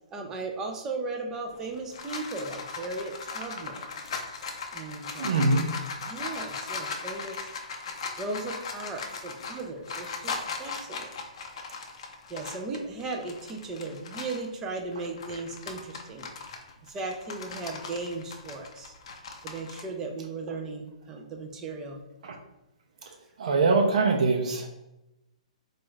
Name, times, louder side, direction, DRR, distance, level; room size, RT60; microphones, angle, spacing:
voice 1, 0.1-3.9 4.7-5.5 6.0-7.5 8.2-11.1 12.3-16.3 16.8-18.9 19.4-22.0, right 3 dB, 10° right, 1 dB, 0.4 m, -36 dB
sound 1, 1.5-14.5 14.9-19.8, left 4 dB, 50° left, 0.5 m, -38 dB
voice 2, 5.2-5.7 22.2-22.3 23.4-24.7, right 3 dB, 65° right, 2 dB, 0.5 m, -23 dB
4.0 x 2.3 x 3.2 m, 0.93 s
hypercardioid pair, 170°, 4 cm